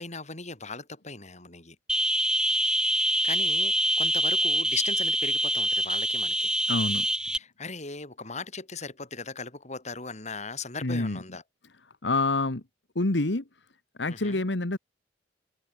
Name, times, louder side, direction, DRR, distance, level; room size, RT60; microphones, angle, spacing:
voice 1, 0.0-1.8 2.9-6.5 7.3-11.4 14.1-14.4, left 4 dB, 40° left, 7.1 m, -38 dB
sound 1, 1.9-7.4, right 1 dB, 5° right, 0.9 m, -25 dB
voice 2, 6.7-7.1 10.8-11.2 12.0-12.6 12.9-13.4 14.0-14.8, left 2 dB, 90° left, 1.7 m, -27 dB
open air
head